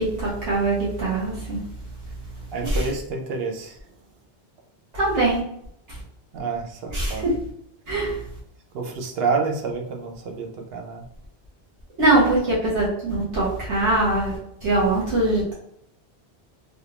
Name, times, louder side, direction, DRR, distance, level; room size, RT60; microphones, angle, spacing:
voice 1, 0.0-1.6 2.6-2.9 4.9-5.4 5.9-6.0 6.9-7.4 7.9-8.2 12.0-15.5, right 2 dB, 85° right, -7 dB, 1.4 m, -22 dB
voice 2, 2.5-3.8 6.3-7.2 8.7-11.0, right 4 dB, 65° right, 2 dB, 0.8 m, -28 dB
3.4 x 2.5 x 2.8 m, 0.75 s
omnidirectional pair, 1.2 m